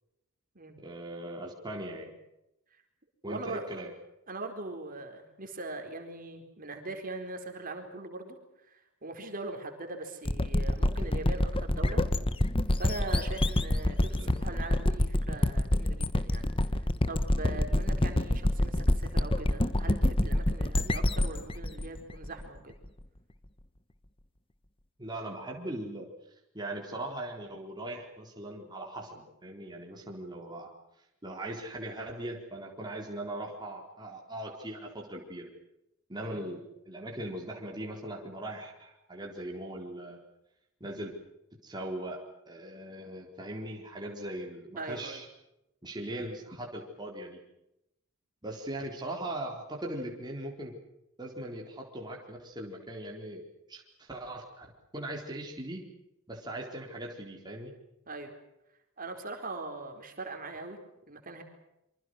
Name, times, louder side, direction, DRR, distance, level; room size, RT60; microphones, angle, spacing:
voice 1, 0.8-2.1 3.2-3.9 14.2-14.3 25.0-30.7 31.2-35.5 36.1-40.2 40.8-41.1 41.6-42.2 42.5-45.3 45.8-47.4 48.4-50.8 51.2-54.7 54.9-55.8 56.3-57.7, right 1 dB, 20° right, -1 dB, 4.0 m, -40 dB
voice 2, 3.2-3.9 4.3-8.4 8.7-12.0 12.8-22.8 36.2-36.4 44.8-45.2 58.1-58.4 59.0-60.8 61.1-61.4, right 2 dB, 40° right, 4 dB, 4.4 m, -41 dB
sound 1, 10.2-22.9, left 1 dB, 25° left, 1.2 m, -27 dB
27.0 x 25.0 x 6.4 m, 0.87 s
head